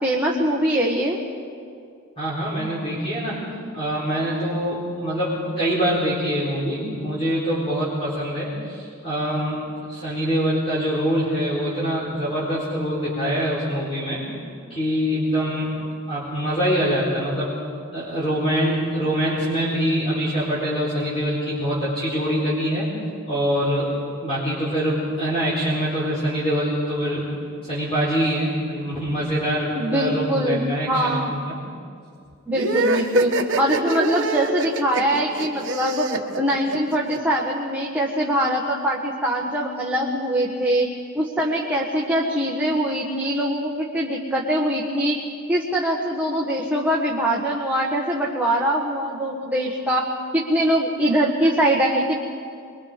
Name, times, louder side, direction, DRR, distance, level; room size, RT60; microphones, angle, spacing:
voice 1, 0.0-1.2 29.7-31.3 32.5-36.1 36.4-40.9 41.1-45.2 45.5-50.0 50.3-52.3, right 1 dB, 5° right, -3 dB, 1.6 m, -23 dB
voice 2, 2.2-3.4 3.7-9.6 9.9-14.2 14.7-15.7 16.1-17.5 17.9-22.9 23.3-23.9 24.2-27.2 27.6-31.6, equal, 25° left, -7 dB, 4.2 m, -24 dB
sound 1, 32.6-37.2, right 2 dB, 55° right, 1.4 m, -24 dB
26.0 x 23.0 x 5.1 m, 2.3 s
head